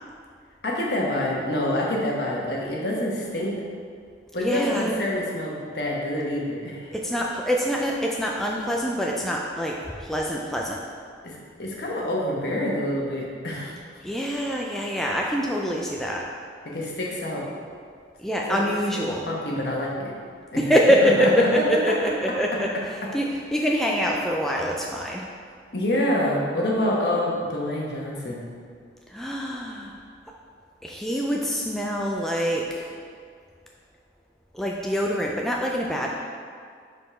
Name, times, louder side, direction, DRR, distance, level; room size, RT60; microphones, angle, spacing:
voice 1, 0.6-3.6 4.3-6.9 11.2-13.8 16.6-17.5 18.5-18.7 18.9-20.1 20.5-20.6 21.0-21.9 25.7-28.5, left 1 dB, 60° left, -3 dB, 1.2 m, -27 dB
voice 2, 4.4-4.9 6.9-10.8 14.0-16.3 18.2-19.3 20.6-22.7 23.1-25.3 29.1-29.9 30.8-32.9 34.5-36.2, equal, ahead, -2 dB, 0.3 m, -25 dB
5.0 x 4.2 x 5.6 m, 2.1 s
head